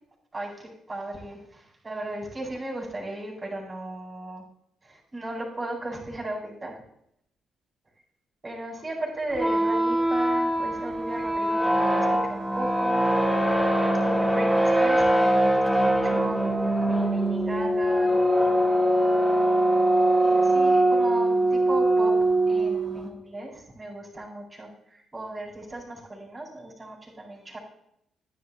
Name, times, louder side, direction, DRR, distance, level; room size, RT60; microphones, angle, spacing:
voice 1, 0.3-4.4 4.8-6.7 8.4-13.1 13.5-13.6 14.0-16.4 16.9-18.2 20.2-22.2 22.5-27.6, right 1 dB, 30° right, -3 dB, 4.6 m, -36 dB
sound 1, 9.3-23.1, right 1 dB, 10° right, 3.4 m, -22 dB
14.5 x 10.5 x 2.5 m, 0.76 s
hypercardioid pair, 45°, 0 cm